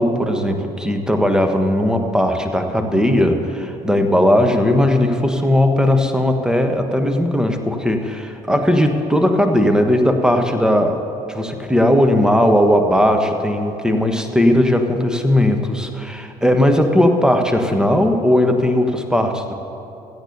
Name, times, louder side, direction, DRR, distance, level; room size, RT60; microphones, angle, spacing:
voice 1, 0.0-19.6, left 1 dB, 5° right, 5 dB, 1.3 m, -17 dB
16.5 x 14.5 x 2.8 m, 2.8 s
figure-of-eight pair, 55°, 19 cm